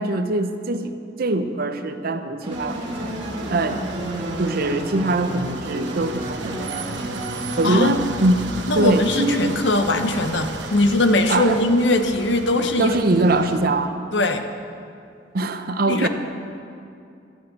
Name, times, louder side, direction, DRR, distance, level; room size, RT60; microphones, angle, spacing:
voice 1, 0.0-3.1 3.5-3.8 4.4-7.3 7.6-8.4 8.8-9.6 11.3-11.6 12.8-13.9 15.3-16.1, right 2 dB, 55° right, 9 dB, 0.7 m, -23 dB
sound 1, 2.4-9.1, equal, 30° right, 1.6 m, -32 dB
sound 2, 2.5-13.6, right 3 dB, 85° right, 1.0 m, -35 dB
voice 2, 7.6-8.0 8.7-13.0 14.1-14.5 15.9-16.1, left 2 dB, 80° left, 7 dB, 0.9 m, -20 dB
11.5 x 7.8 x 8.3 m, 2.5 s
head